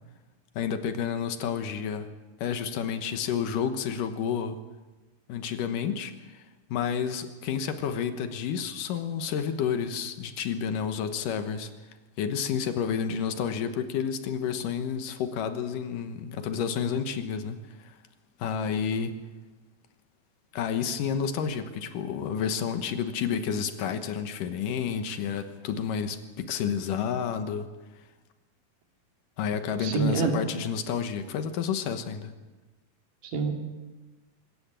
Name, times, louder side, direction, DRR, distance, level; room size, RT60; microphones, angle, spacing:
voice 1, 0.6-2.1 2.4-4.6 5.3-6.4 6.7-11.7 12.2-18.0 18.4-19.2 20.5-27.7 29.4-32.3, left 7 dB, 75° left, 9 dB, 2.7 m, -30 dB
voice 2, 29.8-30.4 33.2-33.5, right 5 dB, 70° right, 3 dB, 3.9 m, -26 dB
24.5 x 14.0 x 8.9 m, 1.3 s
omnidirectional pair, 4.0 m